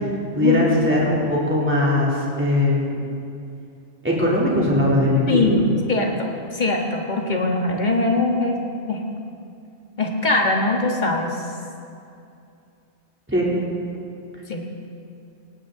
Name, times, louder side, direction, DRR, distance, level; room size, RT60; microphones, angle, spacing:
voice 1, 0.3-3.0 4.0-5.7 13.3-13.4, left 1 dB, 10° right, -6 dB, 3.3 m, -20 dB
voice 2, 5.3-8.6 8.9-9.0 10.0-11.4 14.5-14.7, left 2 dB, 40° left, 1 dB, 1.8 m, -22 dB
18.5 x 17.5 x 3.9 m, 2.5 s
omnidirectional pair, 1.2 m